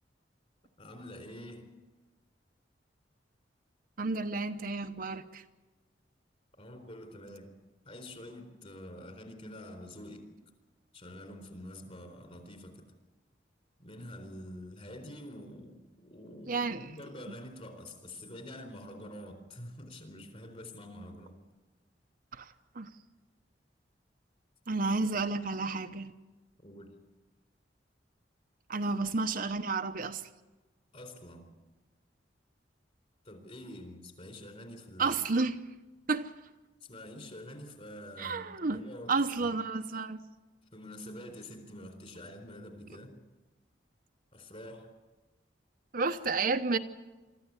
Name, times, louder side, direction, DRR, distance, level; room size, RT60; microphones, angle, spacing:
voice 1, 0.8-1.7 6.6-7.5 7.8-10.3 10.9-12.8 13.8-21.4 26.6-26.9 30.9-31.5 33.2-35.2 36.8-38.4 38.7-39.1 39.4-39.5 40.7-43.1 44.3-44.9, left 1 dB, 35° left, 6 dB, 4.0 m, -46 dB
voice 2, 4.0-5.4 16.5-16.9 17.3-17.4 22.3-22.9 24.7-26.1 28.7-30.3 35.0-35.6 36.1-36.3 38.2-38.8 39.1-40.2 45.9-46.8, right 3 dB, 50° right, 7 dB, 0.9 m, -31 dB
24.0 x 14.0 x 9.6 m, 1.2 s
head